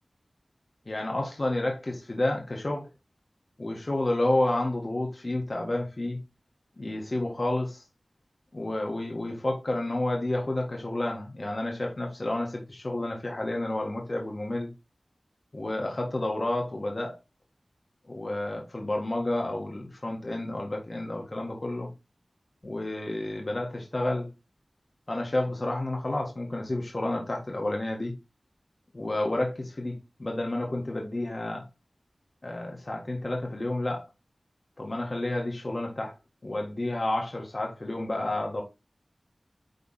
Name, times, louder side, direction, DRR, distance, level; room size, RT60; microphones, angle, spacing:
voice 1, 0.9-2.9 3.6-6.2 6.8-7.8 8.5-14.7 15.5-17.2 18.1-21.9 22.6-24.3 25.1-28.1 28.9-31.6 32.4-34.0 34.8-36.1 36.4-38.6, left 1 dB, 45° left, 1.6 m, -30 dB
9.3 x 3.4 x 4.2 m
wide cardioid pair, 65°, 0 cm